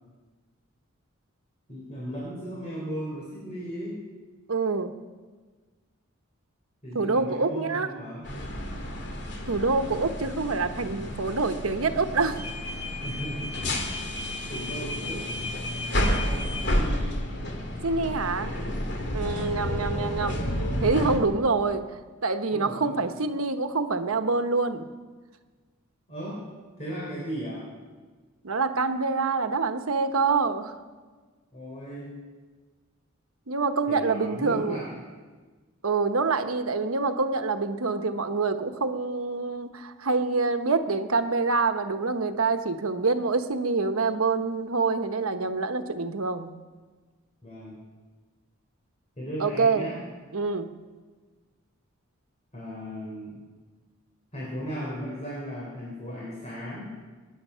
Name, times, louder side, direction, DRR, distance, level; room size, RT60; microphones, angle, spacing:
voice 1, 1.7-4.0 6.8-8.3 13.0-14.0 14.5-15.3 16.2-17.2 19.3-19.6 22.5-23.0 26.1-26.4 26.8-27.7 31.5-32.1 33.9-34.9 47.4-47.8 49.2-50.0 52.5-53.4 54.3-56.9, equal, 30° left, -5 dB, 3.9 m, -36 dB
voice 2, 4.5-4.9 6.9-7.9 9.5-12.4 17.8-18.5 19.1-20.4 20.8-21.8 22.2-24.9 28.4-30.7 33.5-34.8 35.8-46.5 49.4-49.8 50.3-50.7, right 4 dB, 90° right, 8 dB, 1.1 m, -26 dB
sound 1, 8.2-21.2, left 1 dB, 55° left, 2.5 m, -30 dB
24.0 x 10.5 x 5.7 m, 1.4 s
head